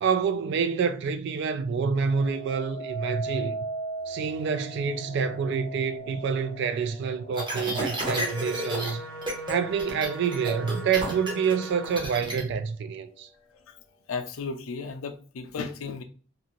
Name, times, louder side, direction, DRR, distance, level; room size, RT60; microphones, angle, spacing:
voice 1, 0.0-3.6 4.1-9.0 9.5-13.3, right 6 dB, 60° right, 0.3 m, -27 dB
sound 1, 2.0-11.1 11.6-12.1, right 3 dB, 25° left, 0.5 m, -40 dB
sound 2, 7.3-8.9 9.2-9.5 9.8-12.4, equal, 25° right, 0.8 m, -31 dB
sound 3, 8.1-12.0, right 1 dB, 75° right, 1.3 m, -40 dB
voice 2, 14.1-16.0, left 4 dB, 80° left, 0.4 m, -34 dB
2.7 x 2.5 x 2.9 m
head